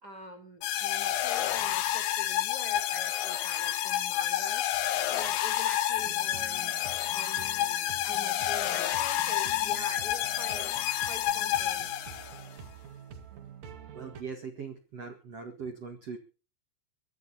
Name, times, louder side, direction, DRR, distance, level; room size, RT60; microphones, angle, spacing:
voice 1, 0.0-4.6 5.1-6.8 7.1-10.7 11.1-11.9, equal, 25° right, 3 dB, 3.3 m, -45 dB
sound 1, 0.6-12.4, left 13 dB, 70° left, 3.2 m, -29 dB
sound 2, 5.9-14.2, right 6 dB, 50° right, 2.4 m, -48 dB
voice 2, 13.9-16.2, right 5 dB, 70° right, 6 dB, 1.4 m, -40 dB
23.5 x 13.5 x 2.9 m, 0.36 s
omnidirectional pair, 5.8 m